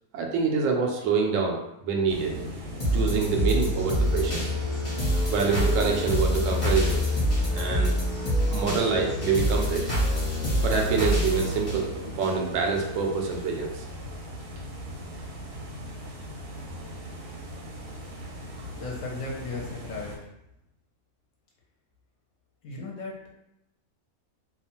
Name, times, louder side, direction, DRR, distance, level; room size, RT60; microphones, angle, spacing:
voice 1, 0.1-2.4 2.9-4.5 5.3-7.1 7.5-7.9 8.5-9.9 10.6-13.8, right 5 dB, 70° right, 1 dB, 0.8 m, -26 dB
sound 1, 2.1-20.2, equal, 85° right, 1.1 m, -39 dB
sound 2, 2.8-12.8 13.3-13.4, equal, 35° left, 0.8 m, -26 dB
voice 2, 18.7-20.3 22.6-23.3, left 3 dB, 65° left, -2 dB, 0.9 m, -36 dB
2.4 x 2.2 x 2.9 m, 0.84 s
omnidirectional pair, 1.6 m